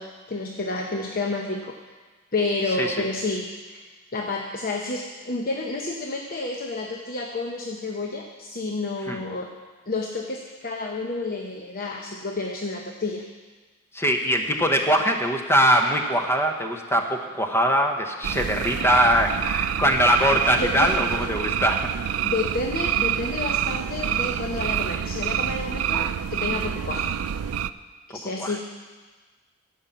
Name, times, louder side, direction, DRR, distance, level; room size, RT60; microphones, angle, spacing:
voice 1, 0.0-1.8 2.3-3.8 4.1-9.5 9.9-13.3 20.4-20.9 22.2-27.1 28.1-28.6, left 3 dB, 45° left, 1 dB, 0.8 m, -30 dB
voice 2, 13.9-21.9 28.4-28.5, equal, 10° left, 3 dB, 1.0 m, -22 dB
sound 1, 18.2-27.7, right 9 dB, 85° right, 0.4 m, -27 dB
15.5 x 5.5 x 7.3 m, 1.4 s
head